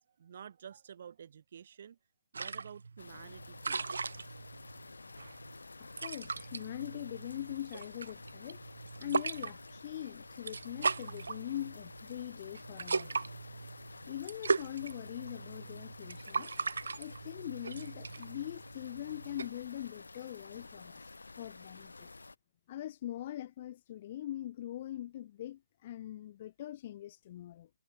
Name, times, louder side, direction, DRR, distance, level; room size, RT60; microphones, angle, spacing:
voice 1, 0.2-2.0 2.3-3.8, right 8 dB, 50° right, 7.3 m, -50 dB
sound 1, 2.3-19.5, right 4 dB, 75° right, 1.9 m, -39 dB
sound 2, 3.0-22.4, left 3 dB, 90° left, 5.6 m, -51 dB
voice 2, 5.8-8.6 9.0-13.2 14.1-16.5 17.0-21.1 21.4-22.1 22.7-27.7, left 12 dB, 35° left, 1.5 m, -42 dB
hypercardioid pair, 155°, 0 cm